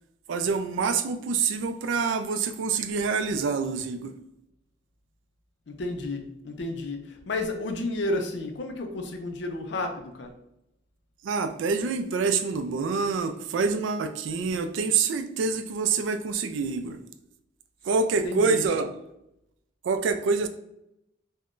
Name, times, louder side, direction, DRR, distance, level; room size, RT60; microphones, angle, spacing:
voice 1, 0.3-4.1 11.2-17.0 17.9-18.9 19.8-20.5, right 5 dB, 75° right, 9 dB, 0.3 m, -26 dB
voice 2, 5.7-10.3 18.2-18.6, left 2 dB, 65° left, 5 dB, 0.4 m, -32 dB
2.4 x 2.1 x 3.6 m, 0.83 s
head